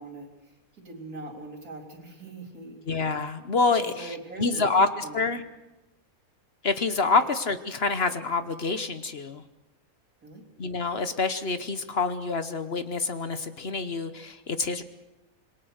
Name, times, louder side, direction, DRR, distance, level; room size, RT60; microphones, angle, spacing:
voice 1, 0.0-2.8 3.7-4.6 5.0-5.2 7.1-7.2 10.2-10.4 14.8-14.9, right 3 dB, 80° right, 3 dB, 4.1 m, -42 dB
voice 2, 2.9-4.9 5.1-5.4 6.6-9.4 10.6-14.8, left 4 dB, 45° left, 11 dB, 1.2 m, -27 dB
27.0 x 22.0 x 6.5 m, 1.0 s
omnidirectional pair, 1.5 m